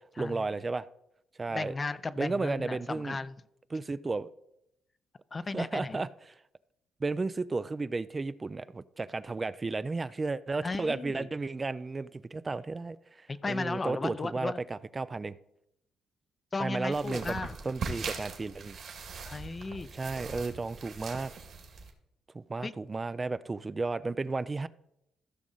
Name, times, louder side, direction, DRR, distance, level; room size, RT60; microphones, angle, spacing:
voice 1, 0.2-0.9 1.4-1.7 2.2-3.2 3.7-4.3 5.5-6.1 7.0-15.3 16.6-17.4 17.6-18.8 19.9-21.3 22.3-24.7, right 3 dB, 25° right, 0.3 m, -33 dB
voice 2, 1.5-3.4 5.3-6.0 10.6-11.3 13.3-14.6 16.5-17.5 19.2-19.9 22.6-22.7, left 3 dB, 30° left, 0.5 m, -35 dB
sound 1, 16.9-21.9, right 5 dB, 60° right, 2.1 m, -41 dB
15.0 x 6.1 x 3.9 m
cardioid pair, 90°, 0 cm